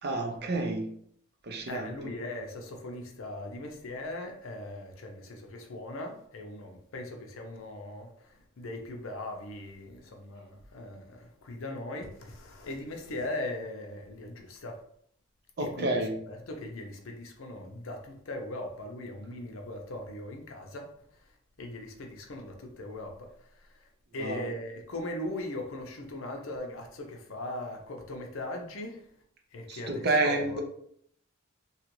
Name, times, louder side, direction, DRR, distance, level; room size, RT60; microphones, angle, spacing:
voice 1, 0.0-0.9 1.4-1.9 15.6-16.2 24.2-24.5 29.7-30.6, right 2 dB, 45° right, 3 dB, 0.5 m, -29 dB
voice 2, 1.7-14.8 15.6-16.0 16.3-20.9 21.6-23.3 23.5-23.8 24.1-29.0 29.5-30.6, left 1 dB, 60° left, 3 dB, 0.6 m, -39 dB
2.9 x 2.4 x 3.0 m, 0.66 s
head